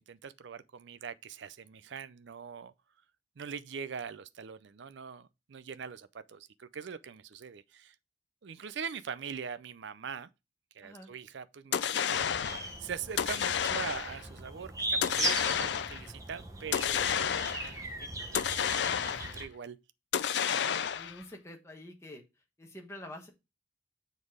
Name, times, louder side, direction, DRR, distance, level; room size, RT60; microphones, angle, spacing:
voice 1, 0.0-2.7 3.4-8.0 8.4-10.3 10.7-19.8, right 6 dB, 60° right, 0.5 m, -43 dB
voice 2, 10.8-11.1 20.9-22.2 22.6-23.3, left 1 dB, 15° left, 1.2 m, -47 dB
sound 1, 11.7-12.7 13.2-14.2 15.0-16.1 16.7-17.8 18.3-19.4 20.1-21.2, left 8 dB, 55° left, 0.4 m, -30 dB
sound 2, 12.1-19.5, right 2 dB, 15° right, 1.0 m, -39 dB
7.2 x 4.1 x 4.8 m
head